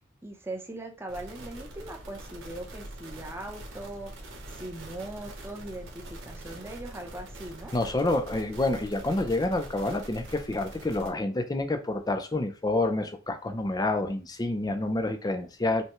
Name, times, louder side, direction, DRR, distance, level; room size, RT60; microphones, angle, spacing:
voice 1, 0.2-7.7, right 1 dB, 15° right, 1 dB, 0.7 m, -40 dB
sound 1, 1.1-11.1, right 1 dB, 85° right, 1.2 m, -44 dB
voice 2, 7.7-15.8, left 2 dB, 20° left, 6 dB, 0.5 m, -28 dB
5.5 x 2.2 x 3.0 m, 0.32 s
head